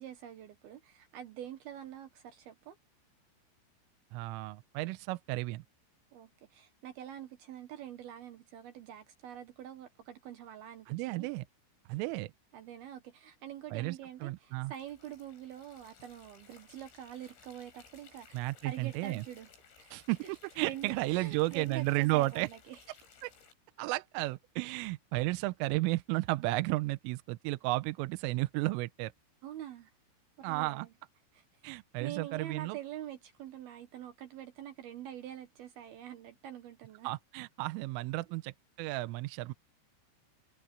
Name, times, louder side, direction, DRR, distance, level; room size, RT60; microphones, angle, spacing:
voice 1, 0.0-2.8 6.1-11.3 12.5-19.5 19.8-20.3 20.6-22.8 29.4-29.9 30.4-30.9 31.3-37.1, right 11 dB, 70° right, 2.5 m, -45 dB
voice 2, 4.1-5.6 10.9-11.4 11.9-12.3 13.7-14.0 14.2-14.7 18.3-19.2 19.9-22.5 23.2-23.3 23.8-29.1 30.4-30.9 31.6-32.8 37.0-39.5, right 20 dB, 85° right, 3.2 m, -33 dB
sound 1, 14.6-23.5, left 6 dB, 75° left, 8.7 m, -60 dB
omnidirectional pair, 5.9 m